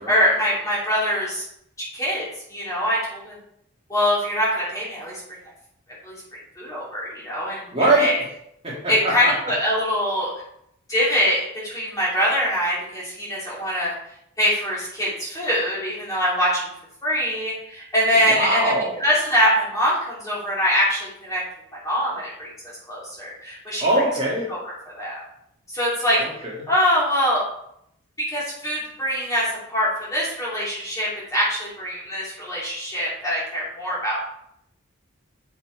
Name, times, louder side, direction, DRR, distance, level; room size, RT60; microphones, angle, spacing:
voice 1, 0.0-1.4 1.8-3.3 3.9-5.2 6.0-6.1 6.6-8.2 8.9-10.3 10.9-13.9 14.4-16.7 17.0-21.4 21.8-22.5 22.9-23.9 24.5-25.2 25.7-26.2 26.7-27.4 28.2-34.3, equal, 15° left, -7 dB, 2.9 m, -23 dB
voice 2, 7.7-8.1 8.6-9.3 18.3-19.0 23.8-24.5 26.1-26.3, right 2 dB, 25° right, -6 dB, 2.1 m, -21 dB
7.0 x 5.8 x 4.6 m, 0.74 s
head